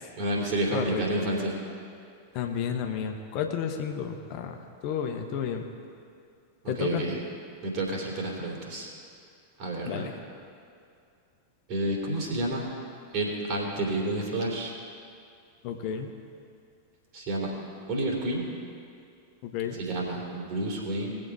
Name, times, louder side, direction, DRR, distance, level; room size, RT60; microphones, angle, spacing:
voice 1, 0.1-1.5 6.6-7.2 7.6-8.9 9.6-10.1 11.7-12.7 13.1-14.7 17.1-17.5 17.9-18.4 19.7-21.1, right 1 dB, 45° right, -2 dB, 3.2 m, -30 dB
voice 2, 0.7-1.0 2.3-5.6 6.7-7.0 9.8-10.1 15.6-16.1 19.4-19.8, left 7 dB, 45° left, 4 dB, 1.0 m, -31 dB
19.5 x 7.5 x 4.8 m, 2.4 s
figure-of-eight pair, 90°, 0 cm